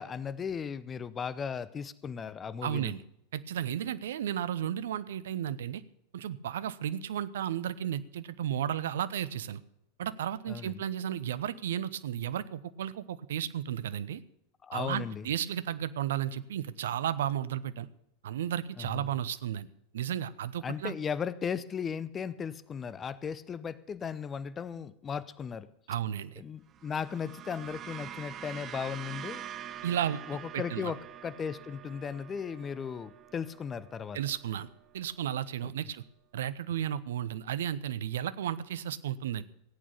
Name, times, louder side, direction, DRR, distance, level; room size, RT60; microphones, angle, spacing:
voice 1, 0.0-3.0 10.5-10.8 14.6-15.3 18.8-19.1 20.6-25.7 26.4-29.4 30.3-34.2 35.6-35.7, left 7 dB, 25° left, 17 dB, 0.7 m, -36 dB
voice 2, 2.6-3.0 3.3-5.8 6.1-9.6 10.0-14.2 14.7-17.9 18.2-19.7 19.9-21.0 25.9-26.4 29.8-30.2 30.5-30.9 34.1-34.7 34.9-36.0 36.3-39.4, right 10 dB, 65° right, 16 dB, 0.7 m, -33 dB
sound 1, 26.7-35.1, right 10 dB, 30° right, 0.8 m, -46 dB
16.0 x 8.7 x 6.9 m, 0.80 s
figure-of-eight pair, 90°, 0 cm